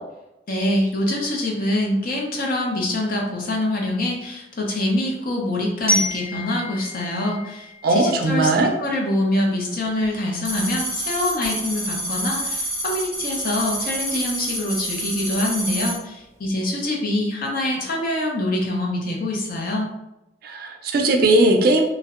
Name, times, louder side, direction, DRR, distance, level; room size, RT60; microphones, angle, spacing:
voice 1, 0.5-8.5 8.8-19.9, left 1 dB, 50° left, -1 dB, 0.5 m, -25 dB
Glockenspiel, 5.9-8.7, left 1 dB, 15° left, 0.9 m, -28 dB
voice 2, 7.8-8.7 20.4-21.8, right 2 dB, 55° right, 3 dB, 0.3 m, -18 dB
sound 1, 10.4-16.0, right 1 dB, 10° right, 0.7 m, -28 dB
2.6 x 2.0 x 2.4 m, 0.93 s
head